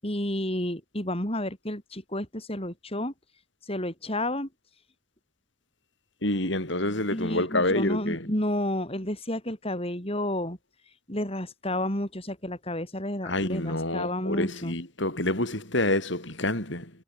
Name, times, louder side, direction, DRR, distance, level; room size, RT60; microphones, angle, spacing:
voice 1, 0.0-3.1 3.6-4.5 7.1-10.6 10.8-14.8, left 1 dB, 30° left, 7.0 m, -31 dB
voice 2, 6.2-8.3 13.2-16.9, left 1 dB, 60° left, 6.1 m, -27 dB
head